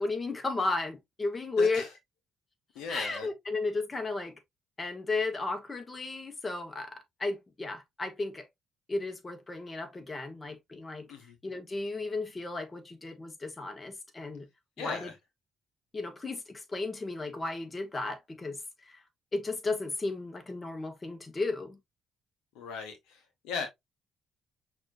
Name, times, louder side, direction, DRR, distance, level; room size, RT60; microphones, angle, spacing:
voice 1, 0.0-1.8 2.9-4.3 4.8-8.5 8.9-11.0 11.4-14.5 14.8-15.1 15.9-19.0 19.3-21.8, left 3 dB, 30° left, 1.3 m, -34 dB
voice 2, 1.6-1.9 2.7-3.3 11.1-11.4 14.8-15.2 22.5-23.7, left 5 dB, 75° left, 0.8 m, -38 dB
5.8 x 2.7 x 2.5 m
hypercardioid pair, 50°, 0 cm